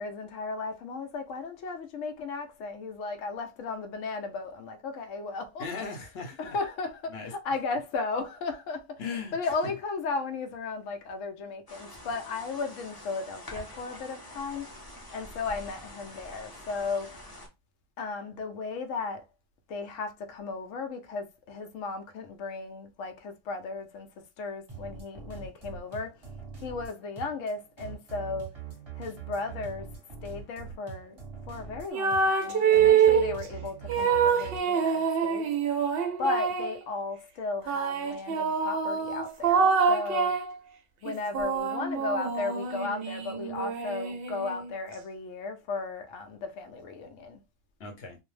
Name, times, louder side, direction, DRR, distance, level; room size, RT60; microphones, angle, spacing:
voice 1, 0.0-5.7 6.4-9.0 9.3-14.7 15.1-17.2 18.0-19.3 19.7-24.1 24.4-26.1 26.6-28.6 28.9-29.9 30.2-31.2 31.5-35.5 36.2-40.4 41.0-47.4, left 4 dB, 85° left, 1.0 m, -35 dB
voice 2, 5.6-6.6 7.1-7.3 9.0-9.7 47.8-48.2, left 4 dB, 60° left, 0.9 m, -38 dB
sound 1, 11.7-17.5, left 1 dB, 25° left, 0.5 m, -46 dB
sound 2, 24.7-34.6, right 7 dB, 25° right, 0.9 m, -43 dB
sound 3, 31.9-33.4 33.9-36.8 37.7-40.5 41.1-44.7, right 6 dB, 60° right, 0.7 m, -26 dB
2.6 x 2.0 x 3.1 m
omnidirectional pair, 1.3 m